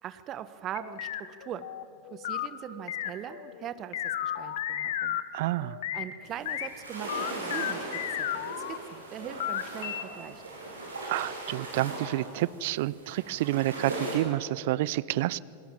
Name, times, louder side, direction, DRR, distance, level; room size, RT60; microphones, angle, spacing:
voice 1, 0.0-1.7 2.1-5.2 5.9-7.9 8.1-10.4, right 10 dB, 30° right, 13 dB, 1.2 m, -41 dB
sound 1, 0.7-5.2 5.6-6.0 6.5-6.7 7.1-8.8 9.2-10.0, left 11 dB, 55° left, 1.3 m, -33 dB
voice 2, 5.3-5.8 11.1-15.4, right 16 dB, 50° right, 22 dB, 0.5 m, -29 dB
sound 2, 6.2-14.1, right 2 dB, 75° right, 6.4 m, -39 dB
28.5 x 20.0 x 7.2 m, 2.6 s
figure-of-eight pair, 90°, 0 cm